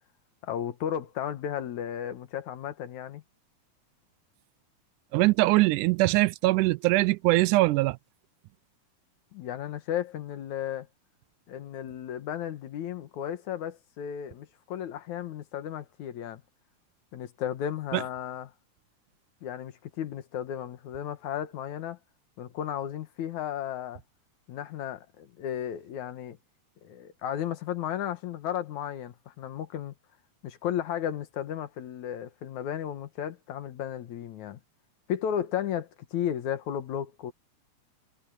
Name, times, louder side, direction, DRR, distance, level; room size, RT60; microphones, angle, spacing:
voice 1, 0.4-3.2 9.3-10.9 11.5-16.4 17.1-18.5 19.4-22.0 22.4-24.0 24.5-26.4 26.8-29.9 30.4-34.6 35.1-37.3, left 10 dB, 70° left, 2.6 m, -34 dB
voice 2, 5.1-8.0 17.9-18.0, right 20 dB, 85° right, 2.1 m, -22 dB
omnidirectional pair, 3.5 m